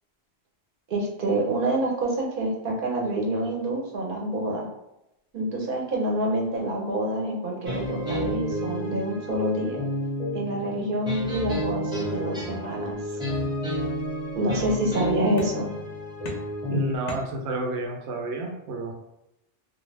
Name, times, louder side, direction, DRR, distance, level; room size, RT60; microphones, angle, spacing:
voice 1, 0.9-4.7 5.3-9.8 10.3-13.0 14.3-15.7, right 1 dB, 55° right, -1 dB, 0.8 m, -27 dB
sound 1, 7.7-17.0, equal, 5° right, 0.7 m, -31 dB
sound 2, 12.0-13.4 13.7-14.4 15.4-15.9 16.2-17.8, left 2 dB, 55° left, 0.5 m, -42 dB
voice 2, 16.7-18.9, right 1 dB, 90° right, 2 dB, 0.9 m, -30 dB
2.4 x 2.1 x 3.2 m, 0.88 s
omnidirectional pair, 1.1 m